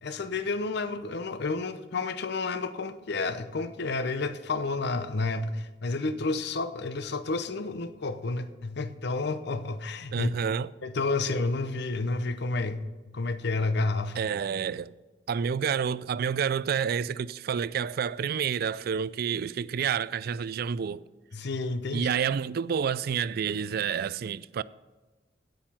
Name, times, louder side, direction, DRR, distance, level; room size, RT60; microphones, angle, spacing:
voice 1, 0.0-10.3 10.8-14.2 21.3-22.1, left 3 dB, 65° left, 0.7 m, -30 dB
voice 2, 10.1-10.7 14.2-14.9 15.3-21.0 21.9-24.6, right 7 dB, 55° right, 0.3 m, -29 dB
9.4 x 8.9 x 5.7 m
head